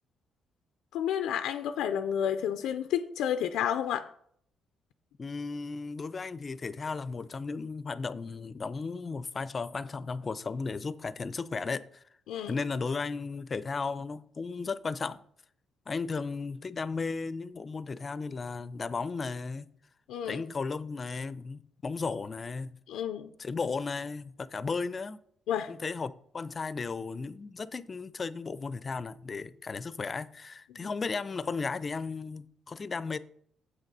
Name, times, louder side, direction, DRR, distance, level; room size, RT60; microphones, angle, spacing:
voice 1, 0.9-4.1 12.3-12.5 20.1-20.4 22.9-23.3 25.5-25.7, left 9 dB, 90° left, 0.4 m, -30 dB
voice 2, 5.2-12.0 12.5-15.2 15.9-19.7 20.2-22.8 23.4-25.2 25.7-33.2, left 4 dB, 35° left, 0.5 m, -35 dB
7.7 x 6.4 x 5.4 m
cardioid pair, 90°, 0 cm